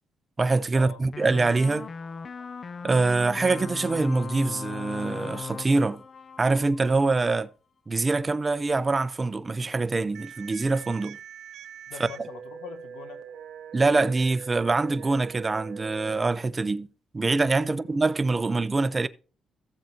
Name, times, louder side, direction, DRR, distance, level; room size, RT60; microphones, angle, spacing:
voice 1, 0.4-1.9 2.8-6.0 6.4-7.5 7.9-11.2 13.7-16.9 17.1-19.1, right 3 dB, 25° right, 0.6 m, -24 dB
sound 1, 1.1-7.2, left 5 dB, 40° left, 0.5 m, -38 dB
sound 2, 10.1-16.1, right 7 dB, 70° right, 0.7 m, -43 dB
voice 2, 11.9-13.2 17.6-18.0, left 7 dB, 90° left, 1.1 m, -43 dB
15.0 x 7.5 x 2.8 m
cardioid pair, 90°, 0 cm